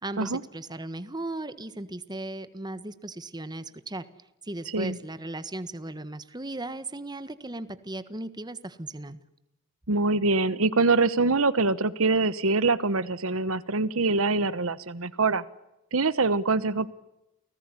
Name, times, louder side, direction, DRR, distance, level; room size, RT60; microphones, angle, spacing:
voice 1, 0.0-4.1 4.4-9.2, right 2 dB, 20° right, 12 dB, 1.5 m, -37 dB
voice 2, 9.9-15.4 15.9-16.9, right 3 dB, 70° right, 15 dB, 1.2 m, -24 dB
29.5 x 19.5 x 9.8 m, 0.93 s
head